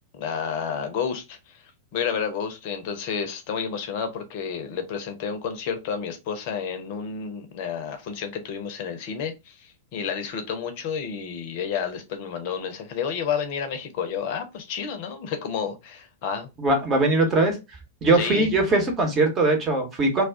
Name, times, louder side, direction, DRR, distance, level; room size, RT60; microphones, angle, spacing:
voice 1, 0.1-1.6 1.9-16.5 18.1-18.5, left 7 dB, 50° left, 7 dB, 0.7 m, -30 dB
voice 2, 16.6-17.6 18.0-20.3, right 2 dB, 25° right, 4 dB, 1.0 m, -21 dB
2.3 x 2.3 x 3.5 m, 0.25 s
figure-of-eight pair, 95°, 0 cm